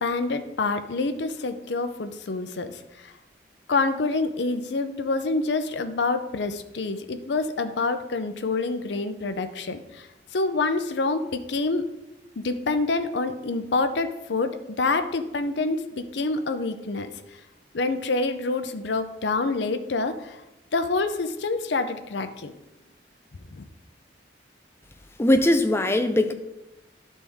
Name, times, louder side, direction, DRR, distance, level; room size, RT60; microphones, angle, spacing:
voice 1, 0.0-2.7 3.7-10.1 10.3-11.9 12.4-14.5 14.8-17.1 17.7-20.4 20.7-22.5 23.5-23.6, left 3 dB, 70° left, 9 dB, 0.6 m, -27 dB
voice 2, 25.2-26.3, left 1 dB, 15° left, 7 dB, 0.5 m, -20 dB
11.5 x 4.1 x 3.5 m, 0.95 s
head